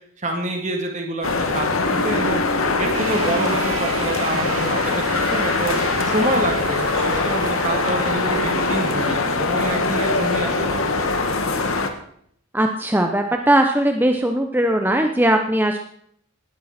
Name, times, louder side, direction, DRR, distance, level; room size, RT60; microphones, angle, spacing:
voice 1, 0.2-2.4 2.8-5.8 6.0-11.2, right 1 dB, 35° right, 2 dB, 2.2 m, -27 dB
sound 1, 1.2-11.9, left 3 dB, 75° left, 1.8 m, -22 dB
sound 2, 2.9-9.2, right 5 dB, 80° right, 1.9 m, -33 dB
voice 2, 12.5-15.8, right 1 dB, 10° right, 4 dB, 0.9 m, -19 dB
18.5 x 12.5 x 4.4 m, 0.65 s
head